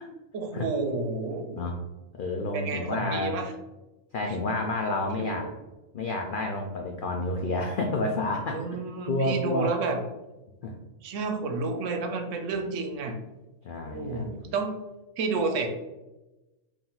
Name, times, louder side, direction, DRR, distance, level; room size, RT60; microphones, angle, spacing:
voice 1, 0.3-1.6 2.5-3.5 5.2-5.4 8.5-10.0 11.0-13.1 13.9-14.7 15.2-15.7, right 3 dB, 70° right, 5 dB, 0.9 m, -30 dB
voice 2, 2.2-3.4 4.1-5.5 5.9-8.6 9.0-9.7 10.6-10.7 13.6-14.3, left 2 dB, 75° left, 1 dB, 0.4 m, -29 dB
4.3 x 2.6 x 3.9 m, 1.1 s
omnidirectional pair, 1.5 m